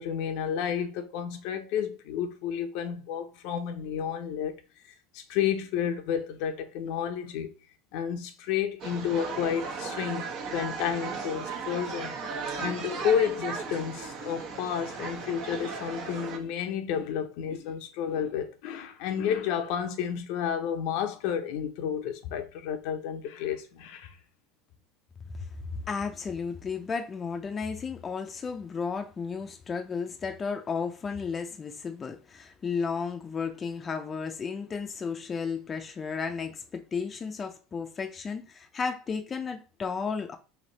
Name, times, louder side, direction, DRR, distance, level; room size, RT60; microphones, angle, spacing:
voice 1, 0.0-4.5 5.1-7.5 7.9-10.2 10.5-12.1 12.6-24.2, left 8 dB, 70° left, 0.7 m, -31 dB
sound 1, 8.8-16.4, right 5 dB, 60° right, 1.0 m, -36 dB
voice 2, 25.7-40.4, left 5 dB, 25° left, 0.5 m, -33 dB
3.4 x 2.8 x 4.0 m
supercardioid pair, 120°, 0 cm